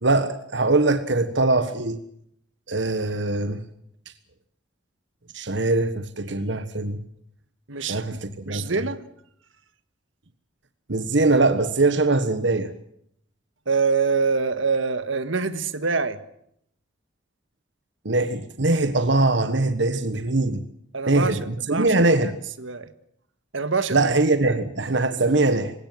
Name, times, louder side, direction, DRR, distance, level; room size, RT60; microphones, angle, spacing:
voice 1, 0.0-2.0 2.7-3.6 5.3-7.0 7.8-8.7 10.9-12.7 18.0-20.6 21.1-22.3 23.9-25.7, right 2 dB, 65° right, 1.4 m, -22 dB
voice 2, 7.7-8.2 8.4-9.0 13.7-16.2 20.9-21.4 21.7-22.9 23.5-24.1 24.5-24.6, right 4 dB, 85° right, 1.7 m, -25 dB
27.0 x 17.0 x 7.7 m
head